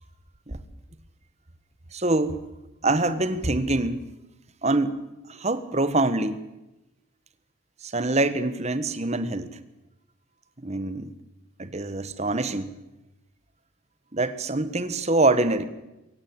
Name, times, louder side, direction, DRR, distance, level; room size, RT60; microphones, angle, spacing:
voice 1, 1.9-2.4 2.8-4.0 4.6-5.0 5.3-6.4 7.8-9.6 10.6-11.1 11.6-12.7 14.1-15.6, right 2 dB, 30° right, 13 dB, 1.4 m, -25 dB
22.5 x 17.5 x 8.8 m, 0.97 s
head